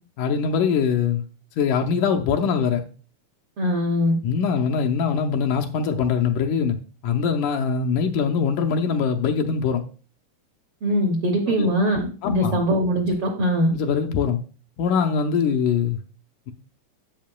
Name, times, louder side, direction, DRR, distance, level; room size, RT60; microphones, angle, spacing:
voice 1, 0.2-1.2 1.6-2.8 4.2-6.8 7.0-9.8 11.6-11.8 12.2-12.6 13.7-14.4 14.8-16.0, left 6 dB, 75° left, 2.0 m, -22 dB
voice 2, 3.6-4.2 10.8-13.7, equal, 75° right, 1.3 m, -22 dB
10.5 x 7.8 x 2.2 m
omnidirectional pair, 3.9 m